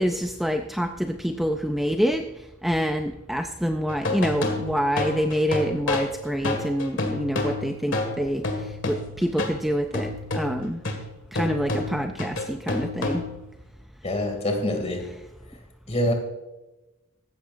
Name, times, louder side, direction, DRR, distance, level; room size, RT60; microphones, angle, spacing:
voice 1, 0.0-10.8 11.3-13.3 15.0-15.1, equal, ahead, 5 dB, 0.4 m, -27 dB
sound 1, 3.9-9.6 9.9-13.5, left 2 dB, 60° left, 2.0 m, -29 dB
voice 2, 14.0-15.0 15.9-16.1, left 1 dB, 30° left, 3 dB, 2.4 m, -25 dB
15.5 x 12.5 x 2.6 m, 1.0 s
head